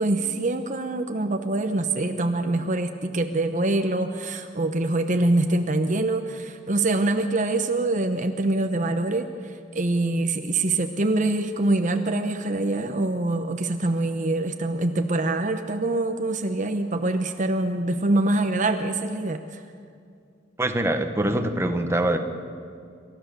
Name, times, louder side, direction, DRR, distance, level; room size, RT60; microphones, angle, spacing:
voice 1, 0.0-19.6, right 2 dB, 40° right, 7 dB, 0.9 m, -24 dB
voice 2, 20.6-22.2, right 1 dB, 15° right, 6 dB, 1.2 m, -24 dB
28.0 x 13.5 x 6.9 m, 2.3 s
head